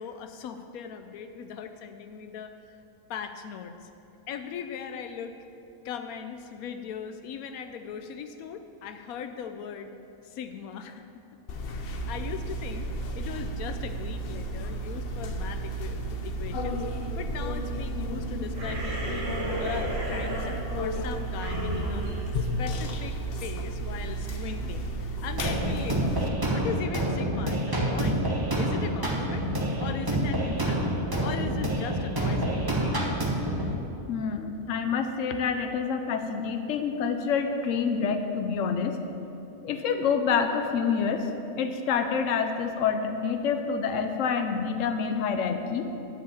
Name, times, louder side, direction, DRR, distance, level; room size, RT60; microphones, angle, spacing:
voice 1, 0.0-2.5 3.1-3.9 4.3-5.4 5.8-9.9 10.2-11.2 11.8-16.8 17.2-19.2 19.6-22.1 22.4-28.2 28.6-29.5 29.8-30.9 31.2-33.3, left 7 dB, 90° left, 7 dB, 1.1 m, -39 dB
sound 1, 11.5-26.3, right 1 dB, 50° left, 0.8 m, -33 dB
sound 2, 18.5-23.3, equal, 65° right, 1.8 m, -35 dB
sound 3, 25.4-33.7, right 1 dB, 20° right, 1.0 m, -27 dB
voice 2, 34.1-39.0 39.6-41.3 41.6-45.9, left 6 dB, 70° left, 7 dB, 1.1 m, -27 dB
11.0 x 5.0 x 8.4 m, 2.8 s
omnidirectional pair, 1.5 m